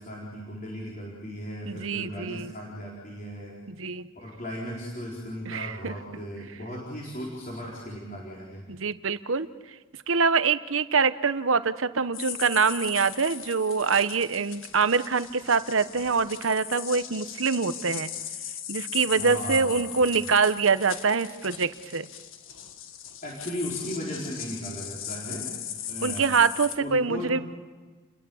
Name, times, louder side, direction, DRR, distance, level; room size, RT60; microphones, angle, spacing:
voice 1, 0.0-3.5 4.2-8.6 19.2-20.2 23.2-25.5 25.9-26.4 26.8-27.3, equal, 40° left, -4 dB, 4.4 m, -36 dB
voice 2, 1.7-2.5 3.7-4.1 5.5-5.9 8.7-9.5 10.1-18.1 18.7-22.1 26.0-27.4, right 5 dB, 80° right, 13 dB, 0.9 m, -25 dB
sound 1, 12.1-26.8, left 10 dB, 80° left, 1.6 m, -38 dB
30.0 x 21.5 x 7.1 m, 1.4 s
head